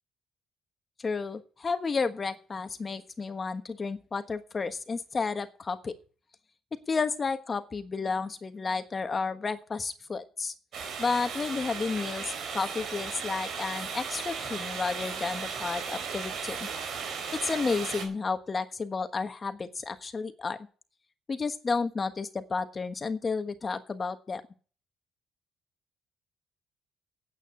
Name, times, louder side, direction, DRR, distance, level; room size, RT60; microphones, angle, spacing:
voice 1, 1.0-5.9 6.9-10.5 11.0-16.7 17.4-20.6 21.3-24.4, left 4 dB, 30° left, 9 dB, 1.3 m, -32 dB
sound 1, 10.7-18.1, right 6 dB, 65° right, 4.1 m, -36 dB
9.3 x 8.4 x 8.3 m, 0.40 s
cardioid pair, 90°, 0 cm